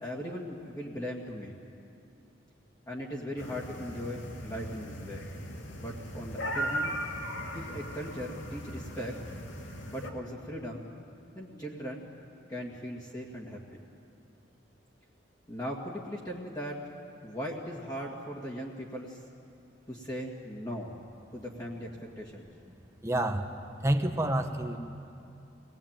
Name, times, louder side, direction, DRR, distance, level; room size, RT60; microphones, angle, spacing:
voice 1, 0.0-1.6 2.9-5.3 5.7-7.0 7.5-9.2 9.8-10.9 11.3-12.1 12.5-13.6 15.5-16.9 17.2-19.3 19.9-20.9 21.3-22.5, equal, 20° left, -4 dB, 2.1 m, -39 dB
sound 1, 3.4-10.1, equal, 85° left, 2.1 m, -38 dB
voice 2, 23.0-23.5 23.8-24.8, right 1 dB, 15° right, 5 dB, 1.2 m, -28 dB
24.0 x 19.0 x 9.0 m, 2.6 s
head